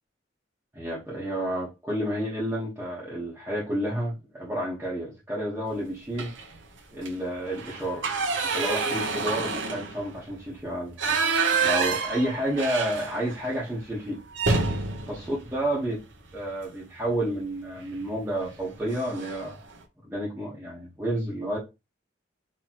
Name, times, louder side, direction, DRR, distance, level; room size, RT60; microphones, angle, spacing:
voice 1, 0.7-6.3 6.9-8.0 8.5-11.2 11.6-14.2 15.1-16.0 16.3-19.5 20.0-21.6, right 1 dB, 10° right, 1.2 m, -30 dB
sound 1, 6.1-6.6 6.9-7.1 7.5-13.5 13.8-13.9 14.3-16.5 17.8-18.1 18.5-18.6 18.9-19.5, right 4 dB, 85° right, 0.8 m, -28 dB
4.3 x 3.1 x 2.9 m
head